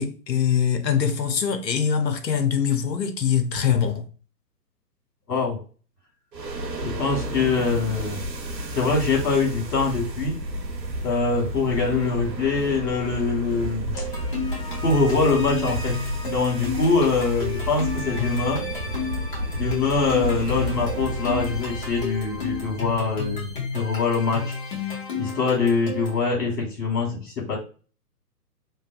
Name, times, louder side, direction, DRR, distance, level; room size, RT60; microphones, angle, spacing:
voice 1, 0.0-4.1, left 7 dB, 85° left, 0.6 m, -23 dB
voice 2, 5.3-5.6 6.8-8.2 8.7-10.4 11.0-14.0 14.8-16.0 16.2-18.6 19.5-24.6 25.2-27.6, left 4 dB, 65° left, 1.3 m, -24 dB
sound 1, 6.3-23.7, equal, 85° right, 0.7 m, -32 dB
sound 2, 13.9-26.2, left 5 dB, 30° left, 0.9 m, -32 dB
2.6 x 2.2 x 2.4 m
figure-of-eight pair, 130°, 49 cm